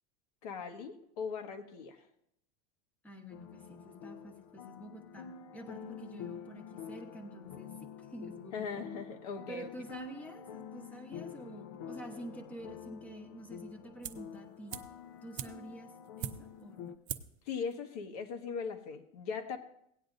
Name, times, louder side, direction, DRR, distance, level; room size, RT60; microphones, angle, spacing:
voice 1, 0.4-2.0 8.5-9.7 17.5-19.6, left 5 dB, 85° left, 6 dB, 1.5 m, -39 dB
voice 2, 3.0-8.9 9.5-14.7 15.2-16.9, right 1 dB, 10° left, 4 dB, 1.0 m, -48 dB
sound 1, 3.3-17.0, left 8 dB, 65° left, 0.8 m, -48 dB
sound 2, 14.0-14.4 14.7-16.7 17.1-17.4 17.7-17.8, right 11 dB, 40° right, 0.5 m, -42 dB
17.5 x 9.5 x 2.6 m, 0.74 s
supercardioid pair, 165°, 19 cm